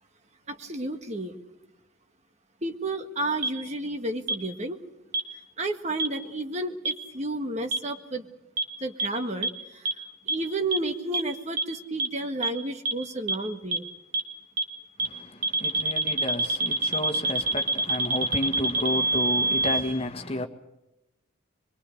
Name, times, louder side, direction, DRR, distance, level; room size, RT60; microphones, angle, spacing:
voice 1, 0.5-1.4 2.6-4.8 5.6-8.3 8.8-9.9 10.3-13.9, right 2 dB, 35° right, 1.8 m, -31 dB
sound 1, 3.4-3.5 4.3-4.4 5.1-5.2 6.0-6.1 6.8-6.9 7.7-7.8 8.6-8.7 9.0-9.1 9.4-9.5 9.8-9.9 10.3-10.4 10.7-10.8 11.1-11.2 11.6-11.7 12.0-12.1 12.4-12.5 12.8-12.9 13.3-13.4 13.7-13.8 14.1-14.2 14.6-14.7 15.0-15.1 15.4-19.8, right 2 dB, 50° right, 2.1 m, -25 dB
voice 2, 15.0-20.5, left 1 dB, 30° left, 1.8 m, -31 dB
24.0 x 22.5 x 6.6 m
head